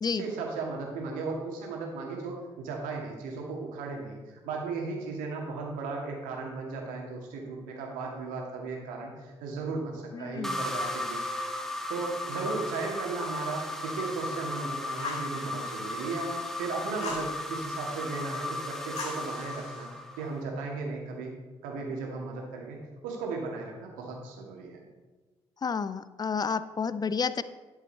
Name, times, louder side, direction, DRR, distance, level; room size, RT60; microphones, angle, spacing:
voice 1, 0.1-11.3 11.9-21.3 21.6-24.8, right 4 dB, 65° right, 0 dB, 2.1 m, -36 dB
voice 2, 10.1-10.6 25.6-27.4, left 5 dB, 25° left, 15 dB, 0.5 m, -30 dB
sound 1, 10.4-20.4, left 1 dB, 5° left, 1.3 m, -35 dB
Fire, 15.0-15.3 17.0-17.3 19.0-19.9, left 3 dB, 50° left, 2.7 m, -37 dB
11.5 x 7.2 x 4.2 m, 1.3 s
figure-of-eight pair, 40°, 15 cm